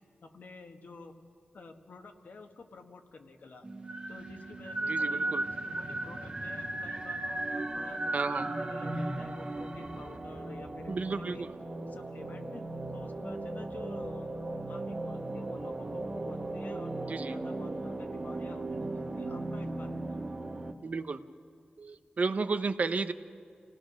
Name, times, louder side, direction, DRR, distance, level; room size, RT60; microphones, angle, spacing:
voice 1, 0.2-1.2 1.5-3.7 4.1-11.4 11.9-12.7 12.9-14.3 14.7-20.2, left 3 dB, 65° left, 4 dB, 1.6 m, -50 dB
sound 1, 3.6-20.7, right 2 dB, 30° right, 1.2 m, -36 dB
voice 2, 4.9-5.4 8.1-8.4 10.9-11.5 17.1-17.4 20.8-21.2 21.8-23.1, right 4 dB, 50° right, 10 dB, 0.8 m, -32 dB
27.5 x 17.5 x 6.3 m, 2.2 s
wide cardioid pair, 120°, 3 cm